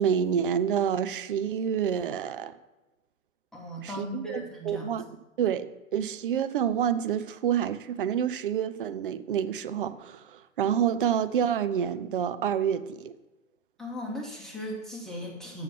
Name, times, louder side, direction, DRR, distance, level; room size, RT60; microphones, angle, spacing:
voice 1, 0.0-2.5 3.8-5.1 5.4-13.1, right 8 dB, 40° right, 12 dB, 0.5 m, -28 dB
voice 2, 3.5-4.9 13.8-15.6, equal, ahead, -3 dB, 1.2 m, -37 dB
7.8 x 6.4 x 6.1 m, 1.1 s
figure-of-eight pair, 115°, 41 cm